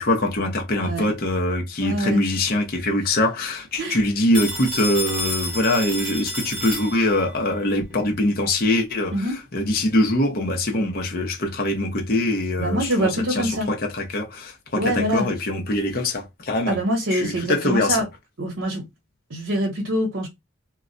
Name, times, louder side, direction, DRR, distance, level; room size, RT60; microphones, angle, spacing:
voice 1, 0.0-16.8 17.1-18.0, left 1 dB, 45° left, 0.7 m, -23 dB
voice 2, 0.7-1.1 1.8-2.2 3.8-4.0 9.1-9.3 12.6-13.7 14.7-15.3 16.7-18.1 18.4-18.8 19.3-20.3, right 1 dB, 75° right, 0.8 m, -24 dB
Telephone, 4.3-7.3, equal, 5° left, 0.7 m, -30 dB
2.2 x 2.1 x 3.7 m
head